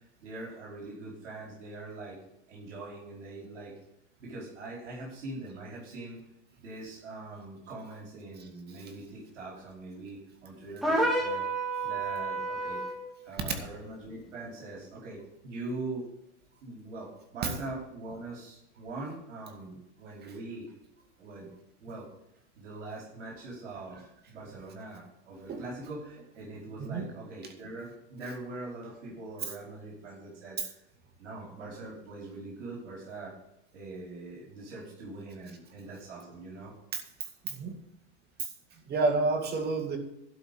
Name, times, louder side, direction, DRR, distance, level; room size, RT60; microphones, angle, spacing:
voice 1, 0.2-2.2 2.5-3.8 4.2-6.2 6.6-11.4 11.8-12.8 13.3-16.1 16.6-20.7 21.2-21.5 21.8-22.1 22.6-30.7 31.2-33.3 33.7-36.7 37.2-37.3, right 2 dB, 80° right, -3 dB, 4.8 m, -42 dB
sound 1, 10.8-13.0, right 2 dB, ahead, 2.5 m, -29 dB
voice 2, 38.9-40.0, right 3 dB, 25° right, 6 dB, 2.0 m, -29 dB
12.0 x 5.3 x 8.3 m, 0.81 s
supercardioid pair, 130°, 35 cm